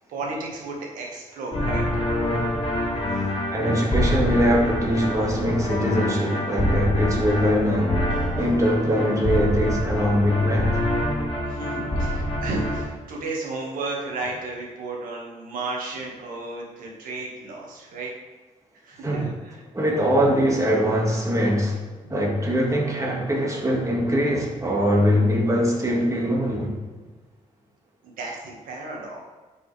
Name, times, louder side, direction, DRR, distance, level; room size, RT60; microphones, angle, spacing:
voice 1, 0.1-2.5 11.4-18.1 18.8-19.6 22.0-22.1 28.0-29.3, right 2 dB, 90° right, -1 dB, 1.8 m, -34 dB
sound 1, 1.5-12.9, left 1 dB, 40° left, 2.1 m, -26 dB
voice 2, 3.5-8.0 8.4-10.8 19.0-19.3 19.7-21.8 22.1-26.8, equal, 25° right, -1 dB, 2.0 m, -22 dB
9.6 x 5.4 x 3.4 m, 1.3 s
cardioid pair, 65°, 14 cm